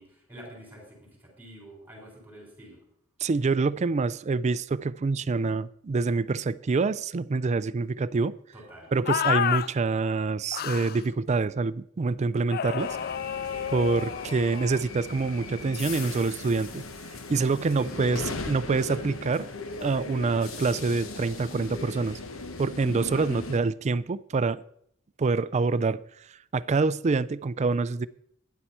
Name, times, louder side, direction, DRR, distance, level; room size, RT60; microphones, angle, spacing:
voice 1, 0.0-2.8 8.5-8.9 13.3-13.9 17.8-18.3 23.0-23.4, equal, 10° right, 4.3 m, -46 dB
voice 2, 3.2-8.4 8.9-13.0 13.7-16.9 17.3-18.2 18.5-19.5 19.8-22.2 22.6-24.6 25.2-26.0 26.3-28.1, right 4 dB, 35° right, 0.4 m, -26 dB
sound 1, 9.1-9.7 10.5-11.0 12.5-14.8, left 9 dB, 45° left, 0.4 m, -30 dB
sound 2, 12.8-23.6, left 3 dB, 70° left, 1.1 m, -38 dB
12.5 x 10.0 x 4.3 m
head